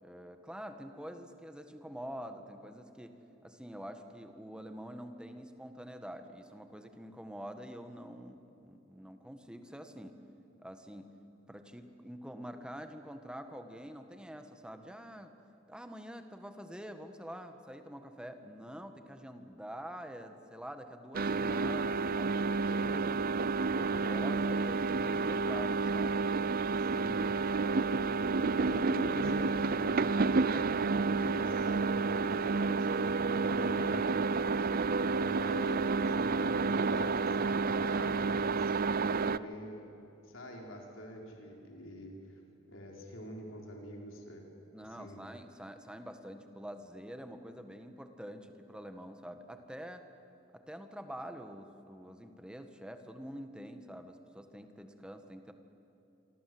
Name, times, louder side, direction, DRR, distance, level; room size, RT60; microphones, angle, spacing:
voice 1, 0.0-3.2 3.4-10.2 10.6-11.1 11.5-15.3 15.7-23.2 23.7-26.2 26.6-27.0 44.7-50.1 50.5-55.5, equal, 5° right, 7 dB, 1.7 m, -46 dB
sound 1, 21.1-39.4, right 4 dB, 45° right, 0.6 m, -30 dB
voice 2, 26.8-27.3 28.4-34.6 35.1-38.7 39.0-39.9 40.2-42.4 42.7-44.4 44.8-45.2, equal, 70° left, 0 dB, 4.9 m, -46 dB
28.0 x 24.5 x 8.0 m, 3.0 s
head